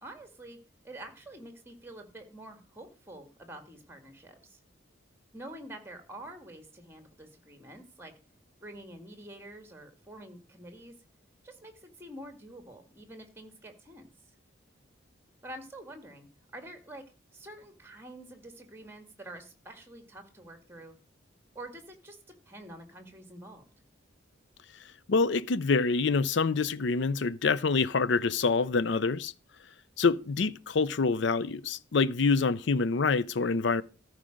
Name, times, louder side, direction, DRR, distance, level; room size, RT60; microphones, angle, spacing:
voice 1, 0.0-0.6 0.8-4.6 5.3-8.1 8.6-10.9 11.4-14.1 15.4-16.3 16.5-17.0 17.3-21.0 21.5-22.2 22.5-23.6, right 1 dB, 10° right, 2.0 m, -47 dB
voice 2, 25.1-29.3 30.0-33.8, left 4 dB, 65° left, 0.5 m, -26 dB
13.5 x 4.9 x 6.4 m
head